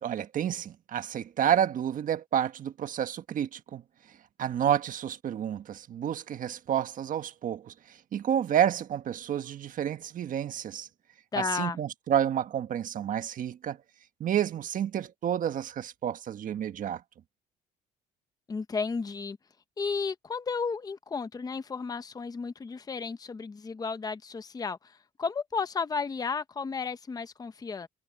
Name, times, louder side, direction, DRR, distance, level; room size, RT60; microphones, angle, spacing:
voice 1, 0.0-3.8 4.4-10.9 11.3-13.8 14.2-17.0, right 10 dB, 50° right, 1.4 m, -30 dB
voice 2, 11.3-11.8 18.5-19.4 19.8-27.9, left 5 dB, 20° left, 0.8 m, -33 dB
cardioid pair, 110°, 17 cm